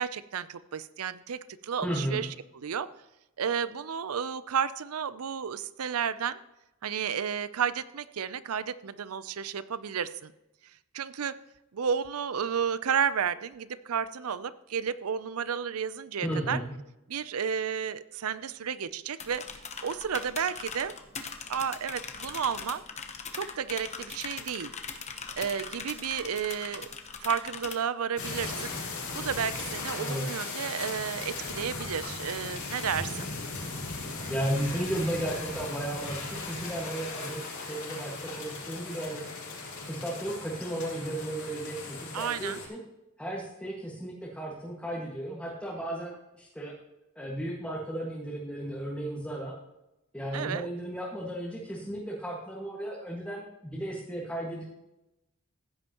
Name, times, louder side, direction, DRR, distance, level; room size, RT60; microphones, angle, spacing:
voice 1, 0.0-2.3 2.5-2.9 3.4-6.4 6.8-10.3 10.9-11.4 11.7-16.6 17.1-19.5 19.8-20.9 21.5-22.8 23.3-24.7 25.4-26.9 27.2-28.7 29.1-33.3 42.1-42.6 50.3-50.7, right 7 dB, 85° right, 15 dB, 0.5 m, -32 dB
voice 2, 1.8-2.2 16.2-16.7 30.0-30.5 34.3-39.2 39.8-42.8 43.2-46.7 47.1-49.5 50.1-54.6, right 1 dB, 5° left, -5 dB, 1.7 m, -34 dB
sound 1, 19.2-27.8, left 5 dB, 30° left, 0.9 m, -41 dB
sound 2, 28.2-42.7, left 3 dB, 80° left, 4.8 m, -38 dB
15.5 x 9.8 x 3.0 m, 0.93 s
head